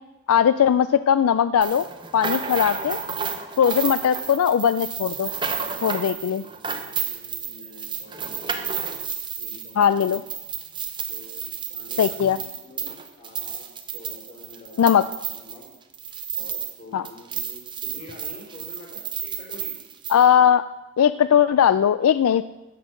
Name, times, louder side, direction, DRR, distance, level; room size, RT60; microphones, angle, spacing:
voice 1, 0.3-1.9 2.1-3.0 3.6-5.3 5.8-6.4 9.8-10.2 12.0-12.4 14.8-15.0 16.9-17.0 20.1-20.6 21.0-22.4, left 8 dB, 80° left, 14 dB, 0.3 m, -19 dB
sound 1, 1.6-16.8 17.0-20.3, right 7 dB, 20° right, 0.7 m, -32 dB
voice 2, 3.9-4.3 6.0-6.5 6.8-9.0 9.4-10.1 11.1-15.7 16.3-19.7, left 1 dB, 40° left, -3 dB, 4.2 m, -46 dB
16.0 x 6.4 x 6.3 m, 1.0 s
head